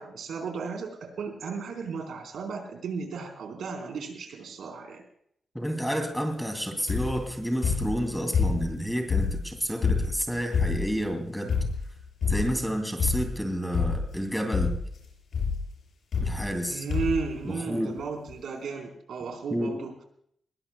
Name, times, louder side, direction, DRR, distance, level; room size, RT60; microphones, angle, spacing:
voice 1, 0.0-5.0 16.7-20.0, right 5 dB, 80° right, 4 dB, 4.2 m, -34 dB
voice 2, 5.5-11.5 12.3-14.8 16.2-16.8 17.4-18.0 19.5-19.8, equal, ahead, 4 dB, 2.6 m, -30 dB
sound 1, 6.9-7.3 7.6-8.8 9.1-11.0 11.5-11.9 12.2-12.6 13.0-13.4 13.7-14.2 14.5-15.0 15.3-15.6 16.1-16.6 16.9-17.3 18.0-18.1 18.3-18.4, left 5 dB, 60° left, 6.8 m, -27 dB
21.0 x 21.0 x 2.3 m, 0.68 s
wide cardioid pair, 150°, 0 cm